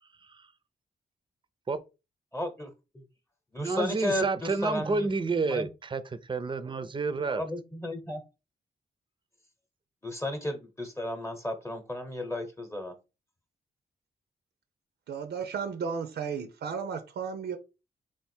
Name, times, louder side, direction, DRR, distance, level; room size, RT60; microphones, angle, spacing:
voice 1, 2.3-3.0 3.5-5.1 5.5-5.7 7.3-8.2 10.0-12.9, left 1 dB, 15° left, 0.9 m, -34 dB
voice 2, 3.6-7.4, right 3 dB, 30° right, 0.5 m, -29 dB
voice 3, 15.1-17.6, right 6 dB, 80° right, 0.6 m, -34 dB
3.5 x 2.5 x 4.3 m
cardioid pair, 70°, 17 cm